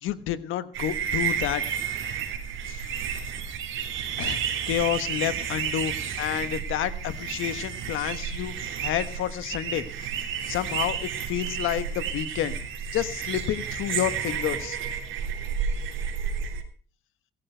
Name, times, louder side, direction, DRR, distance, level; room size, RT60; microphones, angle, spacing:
voice 1, 0.0-1.6 2.7-2.8 4.2-8.5 8.8-9.8 10.5-12.6 12.9-14.8, left 12 dB, 90° left, 13 dB, 1.3 m, -29 dB
sound 1, 0.7-16.6, right 7 dB, 80° right, 3.1 m, -31 dB
18.0 x 13.5 x 4.5 m, 0.40 s
cardioid pair, 90°, 20 cm